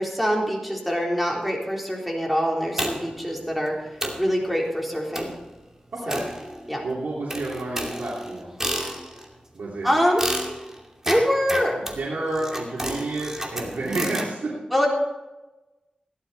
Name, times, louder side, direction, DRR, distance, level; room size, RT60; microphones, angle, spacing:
voice 1, 0.0-3.8 4.2-5.3 6.1-6.2 6.7-6.8 9.8-10.3 11.1-11.8 14.7-14.9, equal, ahead, -2 dB, 3.7 m, -24 dB
sound 1, 2.8-3.2 3.7-3.8 4.0-4.3 5.1-5.5 6.1-6.8 7.3-9.3 10.2-14.3, right 1 dB, 20° right, 2.5 m, -31 dB
voice 2, 5.9-6.2 6.8-8.5 9.5-9.9 11.9-14.5, right 2 dB, 90° right, -6 dB, 3.1 m, -30 dB
16.5 x 11.5 x 4.2 m, 1.1 s
wide cardioid pair, 65°, 3 cm